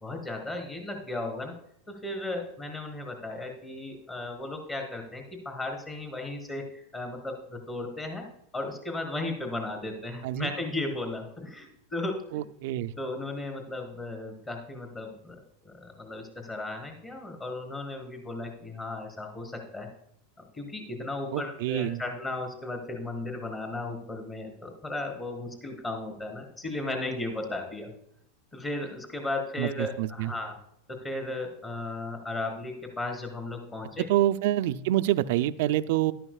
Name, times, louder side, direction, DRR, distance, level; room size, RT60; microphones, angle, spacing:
voice 1, 0.0-1.5 1.9-8.3 8.5-12.4 13.0-15.4 15.6-19.9 20.4-27.9 28.5-30.5 30.9-34.1, left 2 dB, 20° left, 3 dB, 4.1 m, -35 dB
voice 2, 12.3-12.9 21.3-22.0 29.6-30.3 34.0-36.1, right 13 dB, 70° right, 12 dB, 0.5 m, -27 dB
13.5 x 11.5 x 2.4 m, 0.70 s
supercardioid pair, 120°, 0 cm